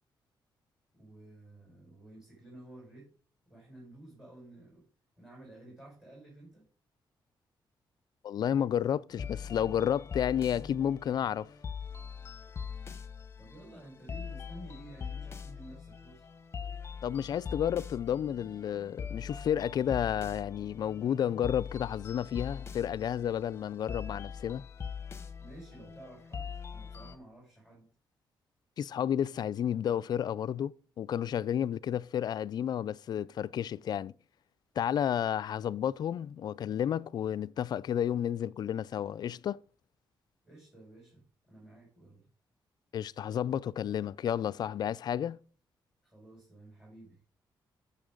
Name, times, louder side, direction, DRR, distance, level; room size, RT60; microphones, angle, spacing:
voice 1, 0.9-3.1 3.5-4.8 5.2-6.6 13.4-16.3 25.4-27.9 40.4-42.3 46.0-47.3, right 1 dB, 5° right, 6.1 m, -52 dB
voice 2, 8.2-11.5 17.0-24.6 28.8-34.1 34.8-39.6 42.9-45.4, left 9 dB, 55° left, 0.4 m, -31 dB
sound 1, 9.1-27.2, left 6 dB, 30° left, 0.9 m, -42 dB
14.0 x 6.9 x 3.8 m
cardioid pair, 140°, 8 cm